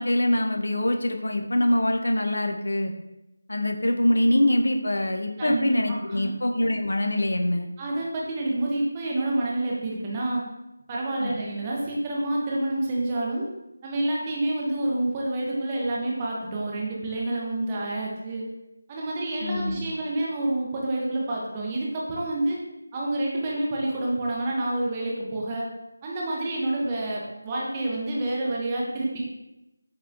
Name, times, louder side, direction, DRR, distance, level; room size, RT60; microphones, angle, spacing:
voice 1, 0.0-2.9 3.5-7.7 11.2-11.3 19.4-19.9, left 1 dB, 65° left, 4 dB, 0.4 m, -24 dB
voice 2, 5.4-5.8 6.1-6.2 7.8-10.4 10.9-13.5 13.8-18.5 18.9-22.6 22.9-25.6 26.0-29.2, right 1 dB, 20° right, -4 dB, 0.6 m, -28 dB
4.2 x 2.2 x 2.6 m, 0.95 s
figure-of-eight pair, 160°, 0 cm